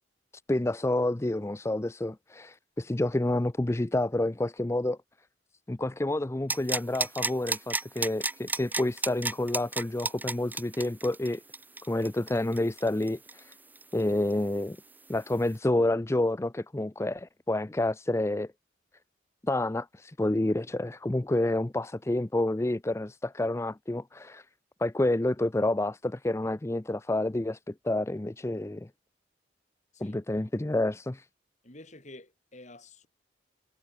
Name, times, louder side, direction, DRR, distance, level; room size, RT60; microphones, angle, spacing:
voice 1, 0.5-5.0 5.7-11.4 11.9-13.5 13.9-14.8 15.1-18.5 19.4-24.5 24.8-28.9 30.0-31.3, left 1 dB, 15° left, 0.5 m, -29 dB
sound 1, 6.5-14.0 14.3-14.4, right 3 dB, 10° right, 1.7 m, -32 dB
voice 2, 31.6-33.1, left 2 dB, 40° left, 4.9 m, -49 dB
head